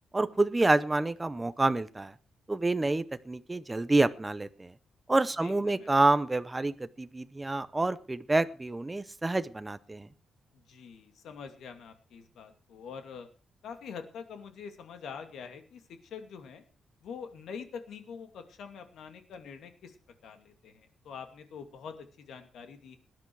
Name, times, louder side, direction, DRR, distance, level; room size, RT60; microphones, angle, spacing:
voice 1, 0.1-2.1 2.5-4.7 5.1-10.1, right 2 dB, 15° right, 13 dB, 0.6 m, -28 dB
voice 2, 5.4-5.9 10.5-13.3 13.6-16.6 17.0-20.0 20.2-23.0, left 6 dB, 75° left, 7 dB, 2.5 m, -45 dB
19.0 x 10.5 x 4.7 m, 0.37 s
wide cardioid pair, 180°, 0 cm